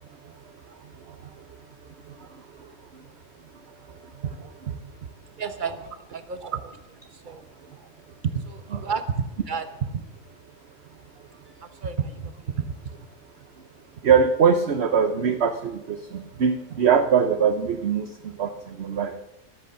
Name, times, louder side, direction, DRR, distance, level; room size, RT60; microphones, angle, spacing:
voice 1, 5.4-6.8 7.3-7.4 7.7-7.8 8.5-9.0 9.5-9.7 11.6-12.1, right 6 dB, 35° right, 9 dB, 1.3 m, -33 dB
voice 2, 14.0-19.2, right 6 dB, 55° right, 7 dB, 1.0 m, -22 dB
23.5 x 8.2 x 6.7 m, 0.93 s
omnidirectional pair, 1.5 m